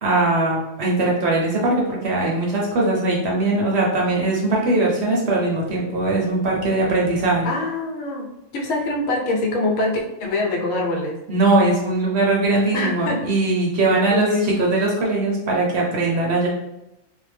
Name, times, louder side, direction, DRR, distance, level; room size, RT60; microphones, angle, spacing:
voice 1, 0.0-7.5 11.3-16.5, right 2 dB, 60° right, -2 dB, 0.8 m, -20 dB
voice 2, 7.4-11.2 12.7-13.2 14.1-14.6, left 2 dB, 75° left, 0 dB, 1.0 m, -24 dB
2.4 x 2.1 x 3.3 m, 0.91 s
omnidirectional pair, 1.4 m